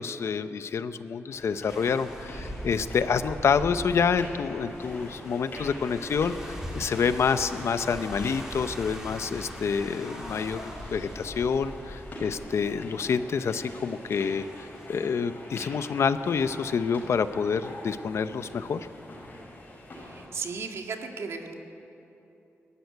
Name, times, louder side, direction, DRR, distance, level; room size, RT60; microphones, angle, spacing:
voice 1, 0.0-18.9, left 6 dB, 70° left, 11 dB, 0.7 m, -28 dB
sound 1, 1.3-20.3, left 1 dB, 40° left, 5.3 m, -44 dB
sound 2, 1.7-14.9, equal, 10° right, 3.1 m, -42 dB
voice 2, 19.9-21.5, right 5 dB, 75° right, 3 dB, 1.9 m, -36 dB
23.0 x 13.0 x 9.4 m, 3.0 s
wide cardioid pair, 170°, 5 cm